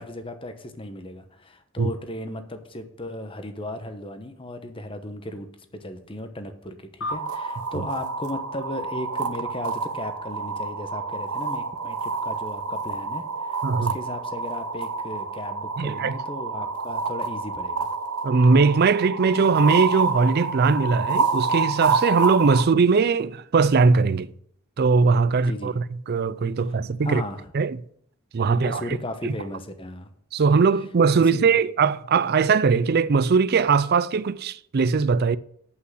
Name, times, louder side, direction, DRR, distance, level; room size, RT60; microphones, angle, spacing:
voice 1, 0.0-5.5 5.7-17.9 25.4-25.7 27.0-27.4 28.5-30.1 31.1-31.4, left 1 dB, 25° left, 1.0 m, -36 dB
sound 1, 7.0-9.7, left 2 dB, 60° left, 0.9 m, -39 dB
sound 2, 7.1-22.6, right 4 dB, 85° right, 1.0 m, -28 dB
voice 2, 13.6-13.9 15.8-16.1 18.2-24.3 24.8-27.2 27.5-27.8 28.3-28.8 29.2-29.4 30.3-35.4, right 4 dB, 45° right, 0.4 m, -20 dB
8.4 x 5.6 x 7.8 m
head